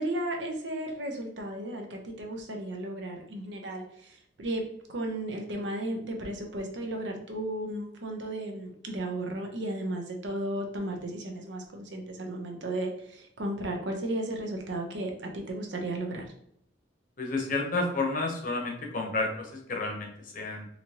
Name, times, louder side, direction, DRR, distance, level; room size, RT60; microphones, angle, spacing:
voice 1, 0.0-4.6 4.9-16.3, right 1 dB, 70° right, 2 dB, 0.7 m, -34 dB
voice 2, 17.2-20.7, left 3 dB, 45° left, 1 dB, 0.8 m, -31 dB
4.0 x 2.9 x 2.9 m, 0.72 s
head